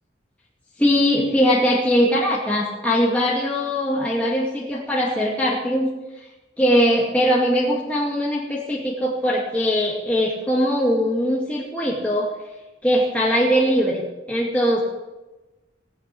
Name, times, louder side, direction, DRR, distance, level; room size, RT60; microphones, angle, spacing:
voice 1, 0.8-5.9 6.6-12.3 12.8-14.0 14.3-14.8, equal, 10° left, -5 dB, 2.3 m, -21 dB
18.0 x 9.4 x 8.5 m, 1.1 s
head